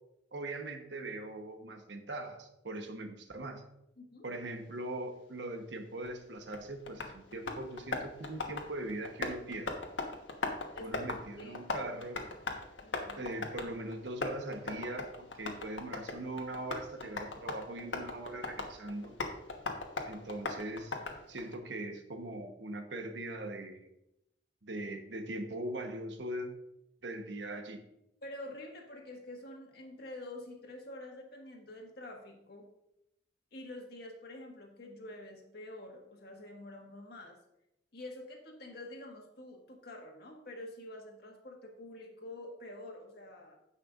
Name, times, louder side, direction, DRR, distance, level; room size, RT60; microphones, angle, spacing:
voice 1, 0.3-3.6 4.2-9.7 10.8-12.2 13.2-19.2 20.1-21.0 21.3-23.9 24.6-26.6 27.0-27.8, right 1 dB, 70° right, 6 dB, 1.0 m, -41 dB
Tap, 6.1-21.6, left 3 dB, 85° left, 1.2 m, -40 dB
voice 2, 10.7-11.9 12.8-13.3 28.2-32.7 33.5-37.4 37.9-43.6, left 1 dB, 55° left, 1 dB, 1.6 m, -47 dB
15.5 x 5.6 x 2.5 m, 0.85 s
head